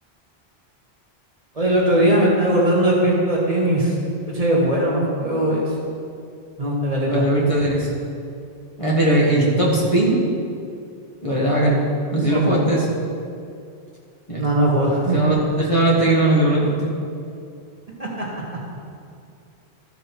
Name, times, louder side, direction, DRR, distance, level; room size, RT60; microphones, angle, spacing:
voice 1, 1.5-3.9 4.3-5.7 6.6-7.3 12.3-12.6 14.4-15.2 18.0-18.2, right 1 dB, 35° right, -4 dB, 1.7 m, -19 dB
voice 2, 7.1-7.9 8.8-10.2 11.2-11.8 12.1-12.9 14.3-14.4 15.1-16.7, right 1 dB, 30° left, -6 dB, 1.6 m, -19 dB
13.5 x 5.2 x 4.6 m, 2.4 s
omnidirectional pair, 1.1 m